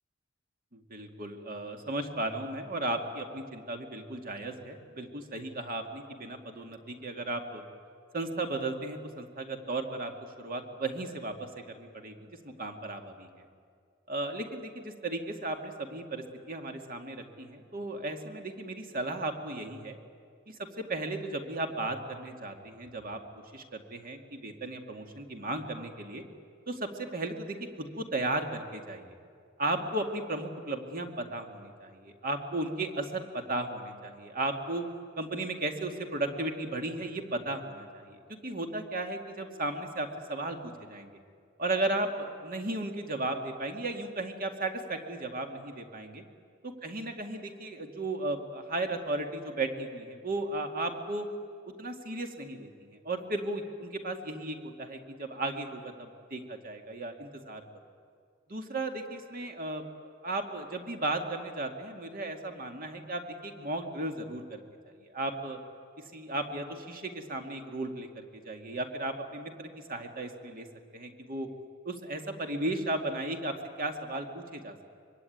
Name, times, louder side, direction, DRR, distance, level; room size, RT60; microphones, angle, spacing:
voice 1, 0.7-7.6 8.1-10.1 10.4-13.4 14.1-20.0 20.5-23.2 23.5-26.2 26.7-29.2 29.6-34.8 35.2-41.2 41.6-46.2 46.6-51.3 51.7-57.6 58.5-59.8 60.2-64.6 65.0-65.6 66.1-70.7 70.9-71.5 71.8-74.7, right 2 dB, 45° right, 4 dB, 2.3 m, -35 dB
24.5 x 23.5 x 9.4 m, 2.2 s
head